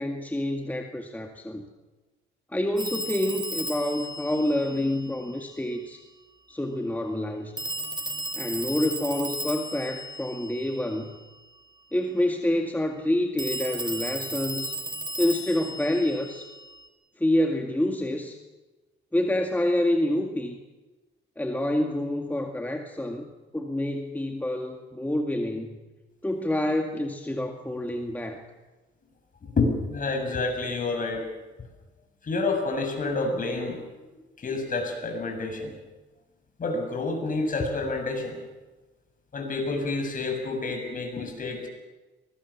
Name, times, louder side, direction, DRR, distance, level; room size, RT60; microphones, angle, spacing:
voice 1, 0.0-1.6 2.5-6.0 6.5-7.5 8.4-11.1 11.9-14.8 15.2-16.5 17.2-18.4 19.1-20.6 21.4-23.2 23.5-25.8 26.2-28.4, left 1 dB, 10° left, 3 dB, 2.0 m, -27 dB
Telephone, 2.8-5.4 7.6-11.2 13.4-16.9, right 1 dB, 20° right, 3.8 m, -35 dB
voice 2, 29.4-31.2 32.2-33.8 34.4-35.7 36.6-38.4 39.3-41.7, left 3 dB, 45° left, 4 dB, 7.1 m, -28 dB
23.0 x 20.5 x 7.2 m, 1.2 s
cardioid pair, 90°, 20 cm